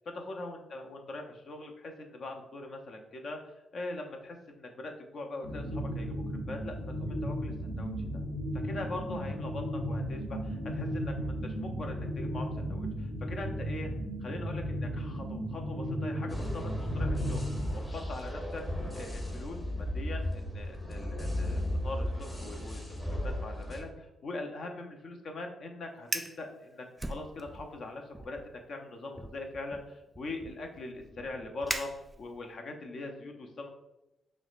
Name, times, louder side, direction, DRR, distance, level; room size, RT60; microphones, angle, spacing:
voice 1, 0.2-8.2 8.6-13.9 14.2-17.5 17.7-33.7, left 2 dB, 60° left, 3 dB, 0.6 m, -42 dB
sound 1, 5.4-17.7, equal, 85° left, 0.9 m, -35 dB
sound 2, 16.3-23.8, left 1 dB, 20° left, 1.0 m, -35 dB
Fire, 26.0-26.4 27.0-27.8 28.1-28.5 29.2-32.5, right 1 dB, 10° right, 0.3 m, -40 dB
5.9 x 2.1 x 2.4 m, 0.95 s
supercardioid pair, 65°, 0 cm